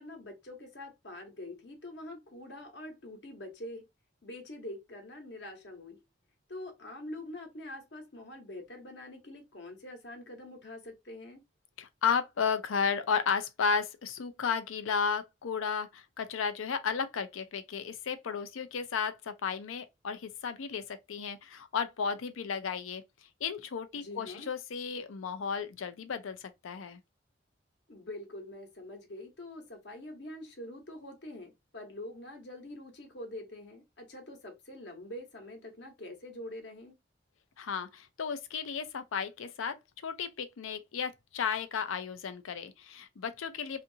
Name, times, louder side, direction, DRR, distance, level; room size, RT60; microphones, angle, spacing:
voice 1, 0.0-3.9 4.2-6.0 6.5-11.4 23.9-24.5 27.9-37.0, left 1 dB, 60° left, 0.9 m, -45 dB
voice 2, 11.8-23.0 23.4-27.0 37.6-39.8 40.0-43.8, left 6 dB, 90° left, 0.5 m, -33 dB
2.7 x 2.5 x 2.6 m
head